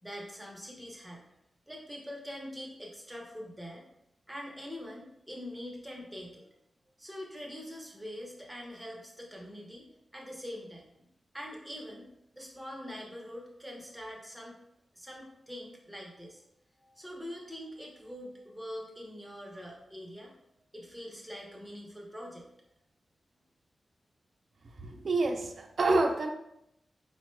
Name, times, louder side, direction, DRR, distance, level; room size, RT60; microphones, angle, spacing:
voice 1, 0.0-1.2 1.7-3.8 4.3-6.4 7.0-11.1 11.3-12.1 12.4-14.6 14.9-16.4 16.8-20.3 20.7-22.5, equal, 5° right, -2 dB, 0.8 m, -44 dB
voice 2, 24.8-26.3, right 2 dB, 55° right, 4 dB, 0.4 m, -28 dB
4.6 x 2.1 x 3.1 m, 0.80 s
wide cardioid pair, 130°, 0 cm